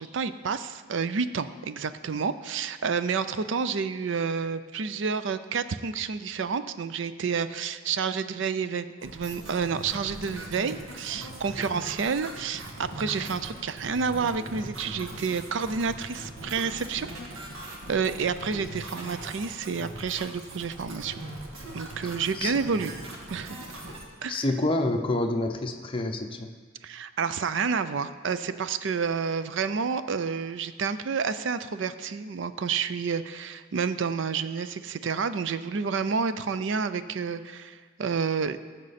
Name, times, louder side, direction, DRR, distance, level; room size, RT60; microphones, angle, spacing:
voice 1, 0.0-17.1 17.9-21.1 21.7-22.9 23.3-23.6 24.2-24.4 26.8-38.6, right 5 dB, 60° right, 12 dB, 0.4 m, -29 dB
sound 1, 9.0-24.1, right 1 dB, 90° right, 1.6 m, -40 dB
voice 2, 24.3-26.5, left 2 dB, 25° left, 4 dB, 0.7 m, -27 dB
14.5 x 6.6 x 4.2 m, 1.5 s
head